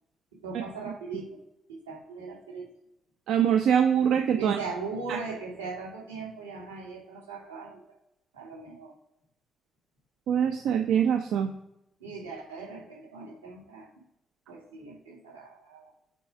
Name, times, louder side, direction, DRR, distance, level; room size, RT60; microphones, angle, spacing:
voice 1, 0.4-1.4 1.7-2.7 4.4-7.8 8.3-9.0 12.0-13.9 14.5-15.9, right 4 dB, 85° right, -3 dB, 2.3 m, -39 dB
voice 2, 3.3-4.6 5.1-5.2 10.3-11.5, right 8 dB, 65° right, 6 dB, 0.6 m, -23 dB
6.8 x 4.8 x 4.8 m, 0.84 s
figure-of-eight pair, 40°, 0 cm